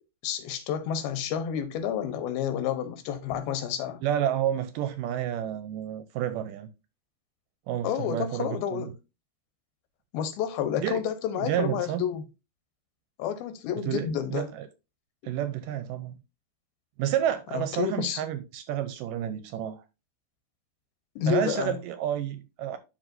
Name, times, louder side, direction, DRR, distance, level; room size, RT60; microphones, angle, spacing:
voice 1, 0.2-4.0 7.8-8.9 10.1-12.2 13.2-14.5 17.5-18.2 21.2-21.8, left 9 dB, 85° left, 2.8 m, -30 dB
voice 2, 4.0-6.7 7.7-8.9 10.8-11.0 11.4-12.0 13.8-14.7 15.2-16.2 17.0-19.8 21.3-22.8, right 11 dB, 80° right, 2.0 m, -30 dB
12.0 x 4.1 x 2.6 m
omnidirectional pair, 4.2 m